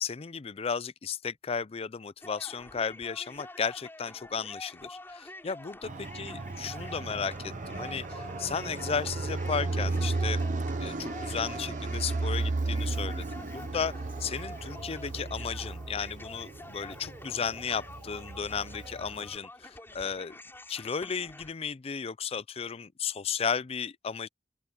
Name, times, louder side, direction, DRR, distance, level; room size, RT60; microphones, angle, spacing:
voice 1, 0.0-10.4 10.8-20.4 20.7-24.3, left 6 dB, 35° left, 0.5 m, -34 dB
sound 1, 2.2-21.5, left 2 dB, 15° left, 7.0 m, -48 dB
Fixed-wing aircraft airplane, 5.8-19.3, right 3 dB, 45° right, 0.7 m, -34 dB
open air
head